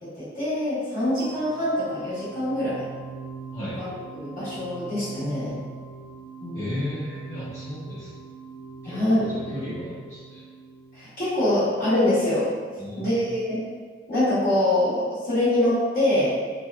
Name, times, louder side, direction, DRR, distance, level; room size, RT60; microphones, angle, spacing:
voice 1, 0.0-2.9 3.8-5.5 6.4-6.9 8.8-9.2 10.9-12.5 13.0-13.6 14.1-16.3, left 1 dB, 50° left, -12 dB, 0.9 m, -24 dB
sound 1, 1.2-12.1, right 5 dB, 90° right, 0.4 m, -42 dB
voice 2, 3.5-3.8 6.5-8.1 8.8-10.4 12.8-13.1, left 1 dB, 20° left, -13 dB, 0.9 m, -34 dB
2.7 x 2.1 x 2.2 m, 1.5 s
head